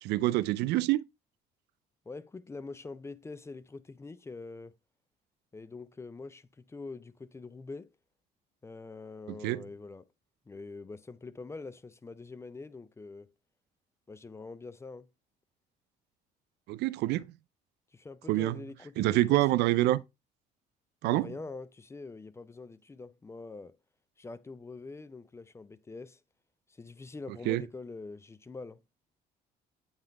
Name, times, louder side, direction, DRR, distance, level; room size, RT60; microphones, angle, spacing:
voice 1, 0.0-1.0 9.3-9.6 16.7-17.2 18.3-18.6 19.0-20.0 21.0-21.3 27.5-27.6, right 17 dB, 80° right, 0.4 m, -26 dB
voice 2, 2.1-4.7 5.5-7.9 8.6-10.1 10.5-13.3 14.1-15.1 17.9-19.6 21.0-23.7 24.2-26.2 26.8-28.8, left 3 dB, 15° left, 0.4 m, -44 dB
8.7 x 3.8 x 3.3 m
cardioid pair, 110°, 17 cm